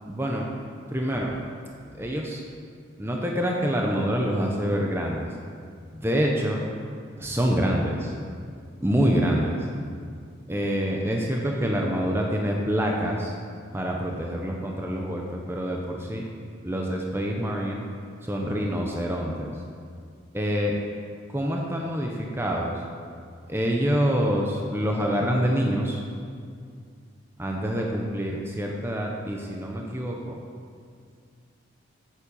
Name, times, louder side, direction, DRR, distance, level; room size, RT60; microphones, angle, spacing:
voice 1, 0.1-0.5 0.9-1.3 1.8-2.4 3.0-5.3 5.9-6.6 7.2-8.3 8.8-9.7 10.5-13.3 13.7-16.2 16.6-17.8 18.2-19.5 20.3-20.8 21.3-22.8 23.5-26.0 27.4-30.4, equal, 10° right, -1 dB, 0.8 m, -26 dB
8.7 x 7.5 x 7.0 m, 2.2 s
head